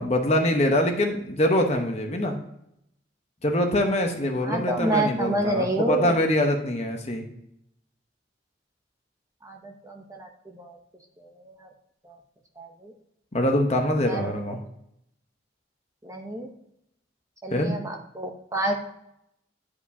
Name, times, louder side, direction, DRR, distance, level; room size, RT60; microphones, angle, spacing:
voice 1, 0.0-2.3 3.4-7.2 13.3-14.6 17.5-17.8, left 1 dB, 35° left, 3 dB, 0.9 m, -24 dB
voice 2, 4.4-6.2 9.4-10.8 11.2-11.7 12.0-12.2 12.6-12.9 14.0-14.3 16.0-16.5 17.4-18.7, right 1 dB, 15° right, 3 dB, 0.7 m, -29 dB
10.5 x 4.9 x 2.7 m, 0.78 s
head